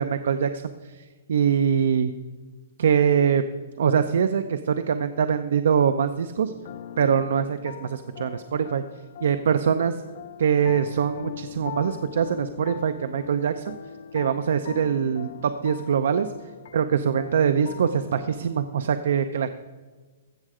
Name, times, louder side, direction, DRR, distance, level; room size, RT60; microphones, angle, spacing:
voice 1, 0.0-2.1 2.8-3.4 3.8-6.5 7.0-8.8 9.2-10.0 10.4-13.7 14.1-16.3 16.7-19.5, right 7 dB, 75° right, 9 dB, 0.5 m, -23 dB
sound 1, 6.5-18.5, left 9 dB, 60° left, 0.5 m, -41 dB
15.0 x 6.5 x 4.9 m, 1.4 s
hypercardioid pair, 155°, 0 cm